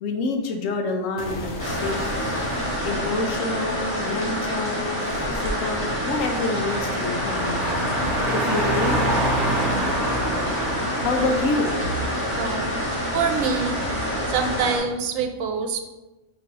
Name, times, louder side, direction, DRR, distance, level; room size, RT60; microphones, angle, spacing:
voice 1, 0.0-2.3 2.8-5.0 5.3-7.6 8.3-9.1 11.0-11.7, left 3 dB, 85° left, 4 dB, 1.0 m, -27 dB
sound 1, 1.2-7.2, left 1 dB, 55° left, 1.0 m, -37 dB
sound 2, 1.6-14.8, equal, 10° left, 1.1 m, -28 dB
Car, 5.1-14.6, right 1 dB, 35° right, 1.1 m, -28 dB
voice 2, 12.4-12.8 13.1-13.8 14.3-15.9, right 5 dB, 90° right, 6 dB, 1.0 m, -25 dB
6.0 x 3.1 x 2.8 m, 1.1 s
omnidirectional pair, 1.3 m